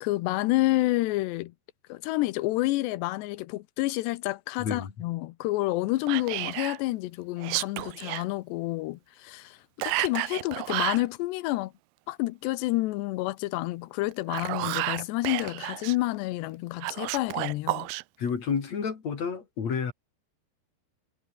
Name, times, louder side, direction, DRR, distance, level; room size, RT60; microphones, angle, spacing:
voice 1, 0.0-1.5 1.9-11.7 12.1-17.9, left 18 dB, 75° left, 2.7 m, -29 dB
voice 2, 4.6-4.9 18.2-19.9, left 6 dB, 40° left, 3.3 m, -30 dB
Whispering, 6.1-6.8 7.4-8.2 9.8-11.1 14.1-16.0 16.8-18.0, right 19 dB, 85° right, 2.3 m, -31 dB
omnidirectional pair, 5.3 m